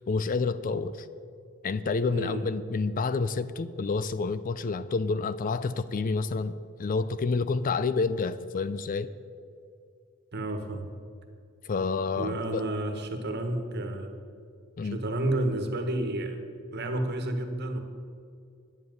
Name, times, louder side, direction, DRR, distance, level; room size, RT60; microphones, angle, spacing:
voice 1, 0.1-1.1 1.6-6.5 6.8-9.1 11.6-12.7 14.8-15.0, left 4 dB, 40° left, 14 dB, 0.4 m, -29 dB
voice 2, 2.1-2.5 10.3-10.8 12.2-14.1 14.8-16.4 16.7-17.8, right 1 dB, 50° right, 5 dB, 1.5 m, -30 dB
10.5 x 7.4 x 9.4 m, 2.3 s
head